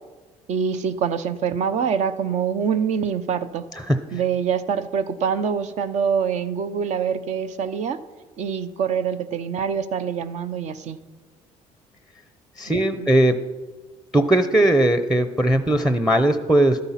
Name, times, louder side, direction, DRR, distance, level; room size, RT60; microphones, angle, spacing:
voice 1, 0.5-3.6 4.1-8.0 8.4-11.0 12.7-13.1, right 7 dB, 60° right, 12 dB, 0.8 m, -25 dB
voice 2, 12.6-13.4 14.1-16.8, right 1 dB, 5° right, 10 dB, 0.7 m, -19 dB
12.5 x 8.8 x 5.8 m, 1.3 s
supercardioid pair, 90°, 13 cm